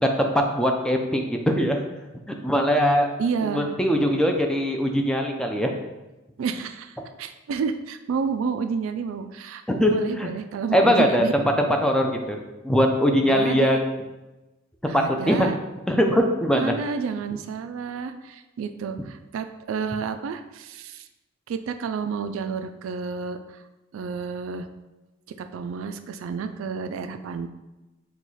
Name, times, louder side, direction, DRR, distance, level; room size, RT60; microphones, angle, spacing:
voice 1, 0.0-1.8 2.3-3.1 3.4-5.7 9.7-10.3 10.7-12.4 12.6-14.0 14.9-15.5 15.9-16.7, equal, 5° left, 2 dB, 0.4 m, -21 dB
voice 2, 3.2-3.7 6.4-11.3 13.3-13.8 14.8-15.6 16.5-21.1 21.5-23.6 23.9-24.7 25.4-27.5, right 5 dB, 70° right, 9 dB, 0.3 m, -30 dB
4.6 x 2.3 x 4.0 m, 1.1 s
head